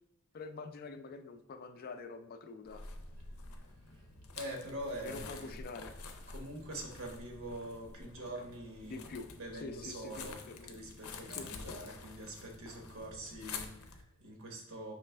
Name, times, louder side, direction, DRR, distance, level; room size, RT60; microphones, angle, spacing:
voice 1, 0.3-2.8 5.0-5.9 8.8-9.3 9.5-10.7 11.3-11.5, left 4 dB, 45° left, 8 dB, 0.4 m, -46 dB
sound 1, 2.7-14.0, left 4 dB, 90° left, 0.6 m, -48 dB
voice 2, 3.6-4.1 4.3-5.5 6.3-14.9, right 1 dB, 70° right, 1 dB, 1.1 m, -45 dB
5.0 x 3.2 x 3.3 m, 0.82 s
head